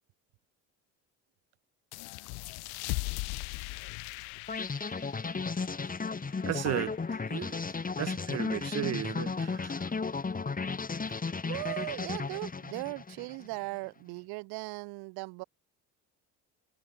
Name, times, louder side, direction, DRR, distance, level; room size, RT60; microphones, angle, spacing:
sound 1, 1.9-7.1, left 30 dB, 90° left, 3.9 m, -40 dB
sound 2, 4.5-13.5, left 4 dB, 25° left, 2.9 m, -34 dB
voice 1, 6.5-6.9 7.3-7.7 8.0-9.7, right 13 dB, 45° right, 0.6 m, -34 dB
voice 2, 11.4-15.4, right 26 dB, 85° right, 1.6 m, -38 dB
cardioid pair, 95°, 36 cm